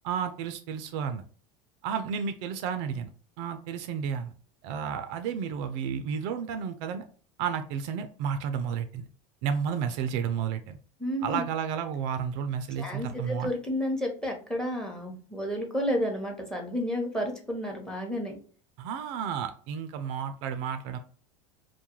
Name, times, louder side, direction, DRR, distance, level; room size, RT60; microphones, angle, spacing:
voice 1, 0.0-1.2 1.8-3.1 3.4-4.3 4.6-7.0 7.4-9.0 9.4-10.8 11.2-13.5 18.8-21.0, right 7 dB, 65° right, 8 dB, 0.4 m, -32 dB
voice 2, 11.0-11.4 12.8-18.4, equal, 5° left, 3 dB, 0.8 m, -31 dB
2.3 x 2.2 x 2.9 m, 0.43 s
hypercardioid pair, 100°, 17 cm